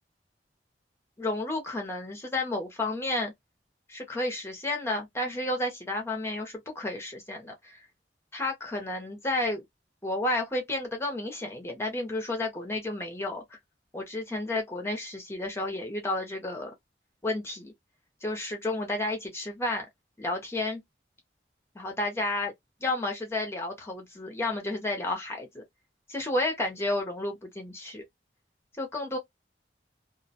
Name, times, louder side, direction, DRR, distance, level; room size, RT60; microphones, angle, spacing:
voice 1, 1.2-3.3 3.9-7.8 8.3-9.6 10.0-13.4 13.9-16.7 17.2-17.7 18.2-19.9 20.2-20.8 21.8-22.5 22.8-25.6 26.1-28.0 28.8-29.2, left 2 dB, 15° left, 0.6 m, -31 dB
2.4 x 2.1 x 2.7 m
head